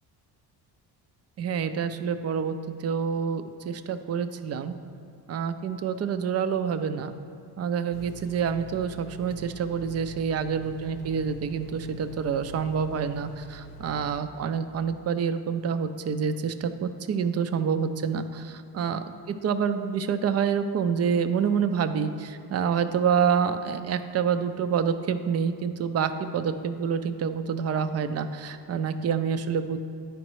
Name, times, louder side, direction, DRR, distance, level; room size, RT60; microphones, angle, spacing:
voice 1, 1.4-4.7 5.3-7.1 7.6-29.8, right 7 dB, 35° right, 10 dB, 0.4 m, -27 dB
sound 1, 7.9-14.2, right 1 dB, 70° left, 0.9 m, -44 dB
9.8 x 5.1 x 3.1 m, 2.6 s
cardioid pair, 95°, 43 cm